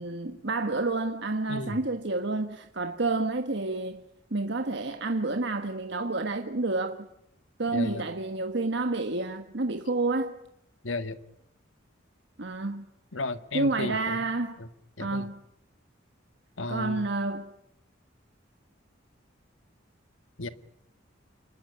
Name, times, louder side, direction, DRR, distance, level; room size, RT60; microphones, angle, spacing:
voice 1, 0.0-4.0 4.3-7.1 7.6-10.4 12.4-12.9 13.5-14.6 15.0-15.4 16.7-17.5, right 2 dB, 65° right, 1.5 m, -29 dB
voice 2, 1.5-1.8 7.7-8.0 10.8-11.2 13.1-14.3 14.6-14.7 15.0-15.3 16.6-17.0 20.4-20.5, left 2 dB, 90° left, 1.7 m, -34 dB
29.0 x 19.0 x 10.0 m
head